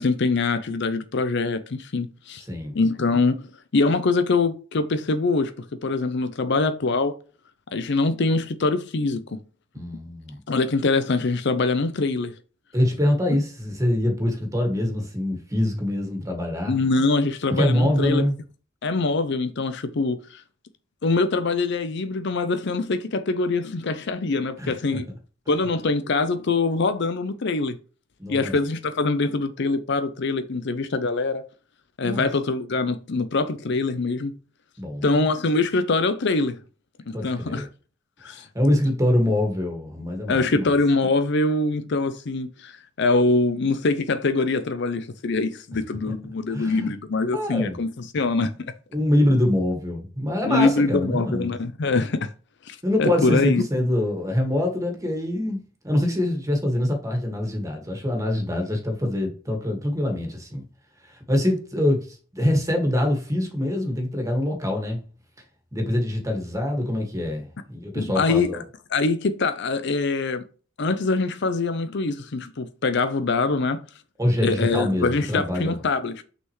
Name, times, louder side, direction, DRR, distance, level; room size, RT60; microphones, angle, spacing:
voice 1, 0.0-2.4 2.7-7.1 7.7-9.2 10.5-12.3 16.7-18.2 18.8-20.4 21.0-25.0 25.5-27.8 28.3-31.4 32.0-34.4 35.0-36.6 37.1-37.7 38.2-38.4 40.3-48.7 50.4-52.3 52.7-53.6 67.9-68.6 68.9-70.4 70.8-73.8 74.4-76.2, left 3 dB, 60° left, 0.6 m, -24 dB
voice 2, 9.7-10.4 12.7-16.7 17.6-18.3 24.6-25.0 28.2-28.5 32.0-32.2 34.8-35.2 37.1-37.7 38.5-40.7 46.5-46.9 47.3-47.8 48.9-51.5 52.8-60.6 61.0-65.0 65.7-68.6 74.2-75.8, left 1 dB, 15° right, 1.8 m, -24 dB
6.3 x 5.6 x 3.1 m
head